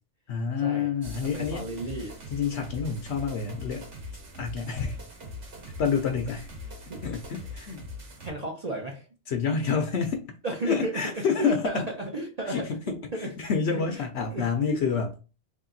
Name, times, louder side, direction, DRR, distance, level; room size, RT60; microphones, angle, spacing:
voice 1, 0.3-1.6 2.3-3.9 4.4-5.0 5.8-6.5 7.0-7.8 9.3-10.3 10.7-11.8 12.5-12.8 13.2-15.2, left 6 dB, 65° left, 0.8 m, -28 dB
sound 1, 1.0-8.3, left 2 dB, 75° right, 1.4 m, -41 dB
voice 2, 1.2-2.2 5.6-5.7 6.9-7.0 8.2-9.1 10.4-13.3 13.7-14.0 14.3-14.8, right 2 dB, 40° right, 0.8 m, -33 dB
3.4 x 2.8 x 3.8 m
omnidirectional pair, 1.2 m